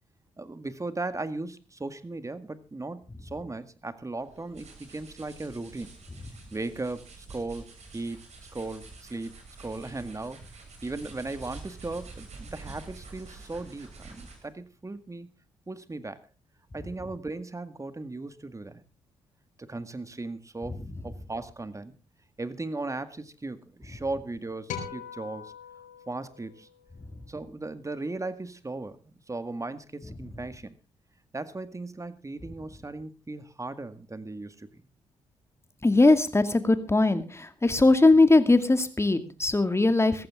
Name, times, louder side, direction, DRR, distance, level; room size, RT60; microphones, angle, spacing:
voice 1, 0.4-5.9 6.5-7.7 7.9-8.2 8.5-9.3 9.6-10.4 10.8-15.3 15.7-16.3 16.7-18.8 19.6-21.9 22.4-25.5 26.1-26.7 27.3-29.0 29.3-30.7 31.3-34.8, right 2 dB, 25° right, 12 dB, 1.9 m, -37 dB
sound 1, 4.2-14.6, right 3 dB, 60° right, 7.0 m, -47 dB
sound 2, 24.7-27.2, left 7 dB, 75° left, 4.6 m, -41 dB
voice 2, 35.8-40.3, left 2 dB, 20° left, 10 dB, 2.3 m, -20 dB
17.5 x 14.5 x 3.7 m, 0.31 s
hypercardioid pair, 50°, 13 cm